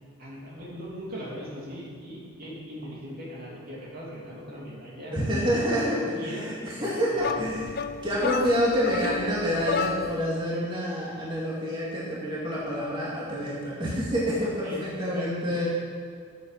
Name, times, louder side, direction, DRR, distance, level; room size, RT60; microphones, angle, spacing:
voice 1, 0.2-5.2 5.4-7.8 14.6-15.6, equal, 45° right, -4 dB, 2.9 m, -40 dB
voice 2, 5.1-7.7 8.0-15.7, equal, 25° right, -6 dB, 2.5 m, -27 dB
sound 1, 7.2-10.3, left 5 dB, 45° left, 0.5 m, -32 dB
15.0 x 8.3 x 5.8 m, 2.1 s
head